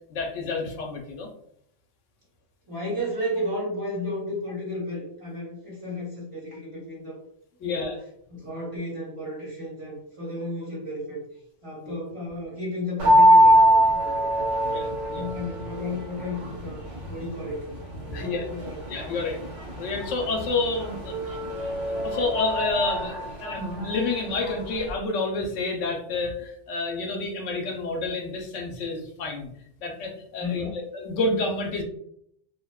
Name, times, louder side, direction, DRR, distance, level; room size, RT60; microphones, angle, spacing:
voice 1, 0.1-1.3 7.6-8.0 11.8-12.0 14.7-15.3 18.0-18.5 18.9-19.4 19.8-21.4 21.9-29.5 29.8-31.8, left 3 dB, 85° left, 2 dB, 0.9 m, -29 dB
voice 2, 2.7-7.2 7.6-8.0 8.3-11.2 11.6-14.3 15.1-17.7 18.0-19.0 30.4-30.8, left 1 dB, 30° right, -7 dB, 1.0 m, -33 dB
sound 1, 13.0-24.9, right 1 dB, 80° right, 1.3 m, -24 dB
2.7 x 2.0 x 2.2 m, 0.71 s
omnidirectional pair, 1.2 m